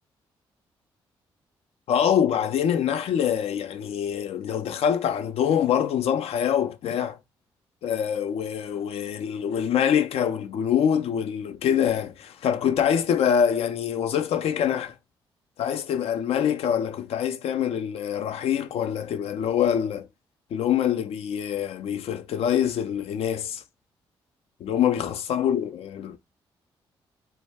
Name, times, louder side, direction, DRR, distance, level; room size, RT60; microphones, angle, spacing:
voice 1, 1.9-7.2 7.8-14.9 15.6-20.1 20.5-23.6 24.6-26.2, left 8 dB, 60° left, 0.4 m, -25 dB
2.1 x 2.0 x 3.2 m
hypercardioid pair, 45°, 12 cm